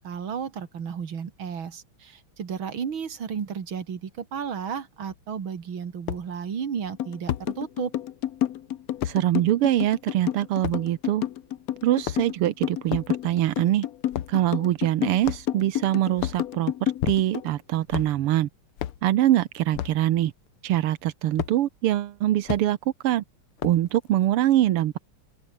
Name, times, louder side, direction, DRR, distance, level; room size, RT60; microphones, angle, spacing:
voice 1, 0.0-7.9, right 7 dB, 65° right, 2.9 m, -33 dB
sound 1, 5.1-5.2 6.1-6.2 7.3-7.5 9.0-9.2 10.6-10.8 11.9-12.4 12.9-13.1 14.1-14.4 15.2-15.6 16.1-16.4 17.0-17.5 17.9-18.2 18.8-19.0 19.7-20.0 21.4-21.6 22.5-22.7 23.6-23.9, left 11 dB, 85° left, 2.0 m, -31 dB
sound 2, 7.0-17.5, left 12 dB, 70° left, 0.8 m, -30 dB
voice 2, 9.0-11.2 11.8-13.9 14.3-18.5 19.0-20.3 20.6-22.8 23.0-23.2 23.6-25.0, right 13 dB, 90° right, 1.9 m, -23 dB
open air
omnidirectional pair, 2.4 m